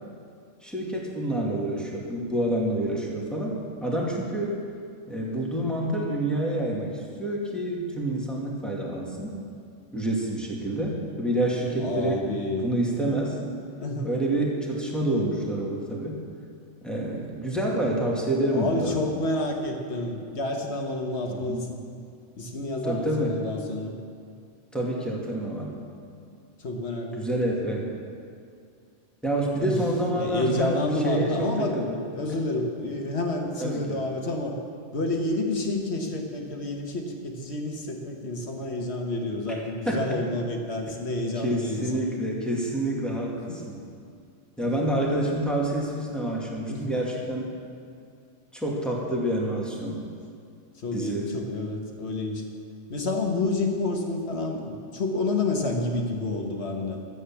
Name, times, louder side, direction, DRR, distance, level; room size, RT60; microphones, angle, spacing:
voice 1, 0.6-4.6 5.1-9.4 9.9-12.2 12.6-13.4 14.0-16.2 16.8-18.9 21.3-21.6 22.8-23.4 24.7-25.8 27.1-27.9 29.2-32.0 33.6-34.0 39.5-39.6 39.9-40.2 41.4-43.8 44.6-47.5 48.5-50.0 50.9-51.3, right 1 dB, ahead, -4 dB, 2.1 m, -28 dB
voice 2, 11.8-12.7 13.0-13.1 13.8-14.1 18.5-21.8 22.4-23.9 26.6-27.2 29.6-29.8 30.1-31.7 32.1-34.6 34.9-42.0 43.5-43.6 44.6-44.7 46.7-47.0 50.8-52.4 52.9-57.0, left 2 dB, 55° left, 2 dB, 1.7 m, -29 dB
13.0 x 8.4 x 7.2 m, 2.3 s
omnidirectional pair, 1.3 m